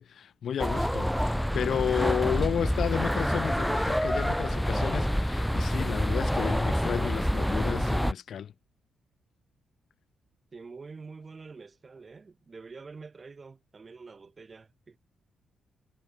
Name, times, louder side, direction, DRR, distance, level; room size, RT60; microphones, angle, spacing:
voice 1, 0.0-8.5, left 8 dB, 65° left, 0.4 m, -32 dB
sound 1, 0.6-8.1, equal, ahead, 0.7 m, -27 dB
voice 2, 10.5-15.0, right 4 dB, 35° right, 2.8 m, -46 dB
cardioid pair, 85°, 0 cm